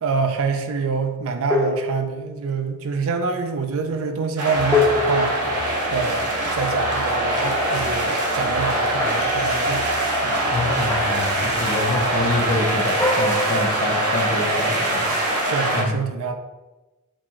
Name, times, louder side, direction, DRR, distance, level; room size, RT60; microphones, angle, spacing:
voice 1, 0.0-5.3 5.9-10.0 10.2-10.5 15.5-16.3, right 4 dB, 65° right, 7 dB, 0.4 m, -26 dB
sound 1, 1.5-2.5 4.7-6.4 9.0-9.5 10.9-11.4 13.0-14.2, left 3 dB, 10° left, 0.4 m, -25 dB
sound 2, 4.4-15.8, right 1 dB, 85° right, 0.9 m, -23 dB
sound 3, 4.5-12.6, right 1 dB, 80° left, 0.9 m, -39 dB
voice 2, 10.5-15.0 15.7-15.9, left 2 dB, 45° left, 2 dB, 0.7 m, -26 dB
4.1 x 2.2 x 4.5 m, 1.1 s
head